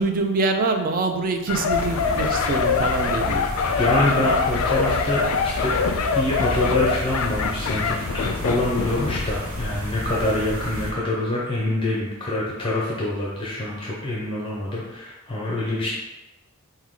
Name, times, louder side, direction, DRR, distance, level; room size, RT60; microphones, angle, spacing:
voice 1, 0.0-3.4, right 3 dB, 40° right, 5 dB, 0.4 m, -24 dB
sound 1, 1.5-9.3 9.6-9.8, left 5 dB, 75° left, 0.3 m, -24 dB
sound 2, 1.7-10.9, left 1 dB, 90° right, 1.0 m, -31 dB
voice 2, 3.7-5.8 6.1-15.9, left 1 dB, 25° left, -5 dB, 0.6 m, -25 dB
4.6 x 2.2 x 3.6 m, 1.1 s
head